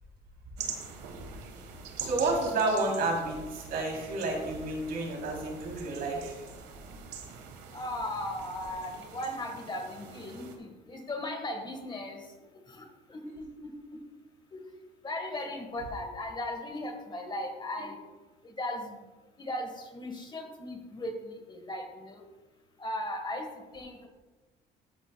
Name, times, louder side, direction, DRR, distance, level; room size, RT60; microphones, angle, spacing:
sound 1, 0.6-10.6, right 6 dB, 85° right, 1.4 m, -44 dB
voice 1, 2.0-6.3, right 2 dB, 65° right, -1 dB, 3.2 m, -30 dB
voice 2, 7.7-12.2 12.7-13.7 14.5-14.6 15.0-18.0 18.4-19.0 19.4-22.2 22.8-23.5 23.7-24.1, left 1 dB, 25° left, 4 dB, 1.4 m, -37 dB
13.5 x 8.2 x 2.2 m, 1.2 s
cardioid pair, 110°, 17 cm